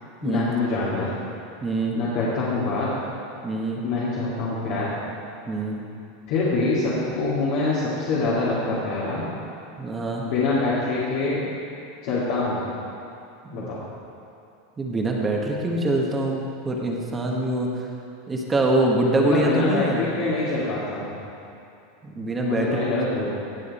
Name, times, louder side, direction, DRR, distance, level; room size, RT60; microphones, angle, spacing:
voice 1, 0.2-1.1 1.9-2.9 3.8-4.9 6.3-9.3 10.2-11.5 12.0-12.6 13.5-13.8 19.2-21.2 22.4-23.3, left 3 dB, 60° left, -9 dB, 2.4 m, -25 dB
voice 2, 1.6-1.9 3.4-3.8 5.5-5.8 9.8-10.2 13.5-13.7 14.8-17.7 18.3-20.0 22.0-22.8, right 2 dB, 15° right, -1 dB, 1.3 m, -24 dB
17.0 x 7.3 x 4.3 m, 2.6 s
supercardioid pair, 145°, 0 cm